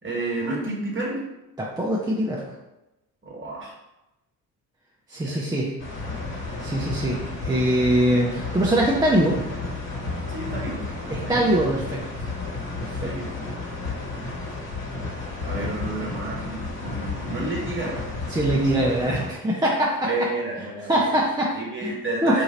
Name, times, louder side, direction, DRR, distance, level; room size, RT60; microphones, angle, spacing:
voice 1, 0.0-1.3 3.2-3.7 5.2-5.4 10.3-10.9 11.2-11.4 13.0-13.5 15.4-18.1 20.0-21.1 21.5-22.4, right 2 dB, 25° right, -2 dB, 1.3 m, -30 dB
voice 2, 1.8-2.4 5.1-5.7 6.6-9.4 11.1-12.3 12.8-13.1 18.3-20.1 20.9-21.5 21.8-22.0 22.2-22.4, right 1 dB, 10° right, -4 dB, 0.5 m, -22 dB
sound 1, 5.8-19.3, left 3 dB, 60° left, 1.3 m, -32 dB
2.8 x 2.6 x 4.2 m, 0.97 s
hypercardioid pair, 45°, 49 cm